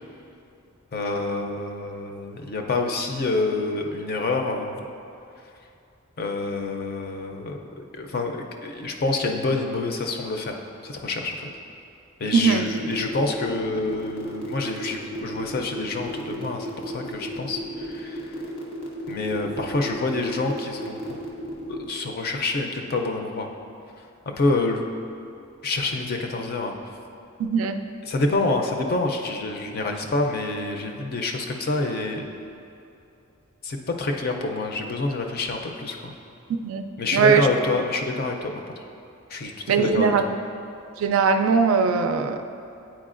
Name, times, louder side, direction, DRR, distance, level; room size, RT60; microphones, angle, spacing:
voice 1, 0.9-4.8 6.2-10.6 10.8-11.5 12.2-18.4 19.1-21.0 21.7-23.5 24.3-24.8 25.6-26.7 28.0-32.2 33.6-36.1 37.0-38.8 39.3-40.3, left 3 dB, 45° left, 3 dB, 0.5 m, -27 dB
voice 2, 12.3-12.7 27.4-27.8 36.6-37.5 39.7-40.2 41.0-42.4, right 5 dB, 70° right, 7 dB, 0.3 m, -20 dB
sound 1, 12.6-21.8, right 1 dB, 85° left, 1.2 m, -34 dB
8.8 x 4.5 x 2.5 m, 2.6 s
head